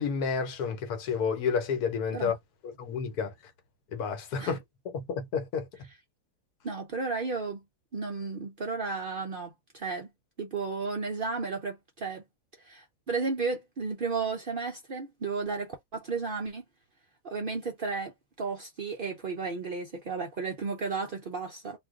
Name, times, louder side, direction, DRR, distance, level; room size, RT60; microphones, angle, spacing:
voice 1, 0.0-2.4 2.6-3.3 3.9-5.7, left 6 dB, 75° left, 1.2 m, -30 dB
voice 2, 6.6-7.6 7.9-10.1 10.4-12.2 12.6-16.6 17.2-21.8, right 4 dB, 75° right, 0.4 m, -33 dB
2.5 x 2.3 x 3.5 m
omnidirectional pair, 1.7 m